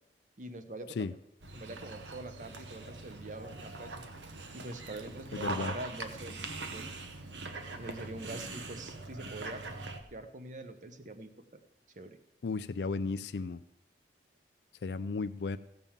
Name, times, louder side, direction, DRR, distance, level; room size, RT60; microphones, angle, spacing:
voice 1, 0.4-1.1 1.5-4.0 4.5-6.9 7.8-9.6 10.1-11.6 11.9-12.2, right 2 dB, 45° right, 9 dB, 0.9 m, -44 dB
Dog, 1.4-10.0, right 3 dB, 80° right, 1.1 m, -42 dB
voice 2, 5.3-5.7 12.4-13.6 14.8-15.6, left 4 dB, 65° left, 11 dB, 0.4 m, -34 dB
15.5 x 5.4 x 7.3 m, 0.83 s
head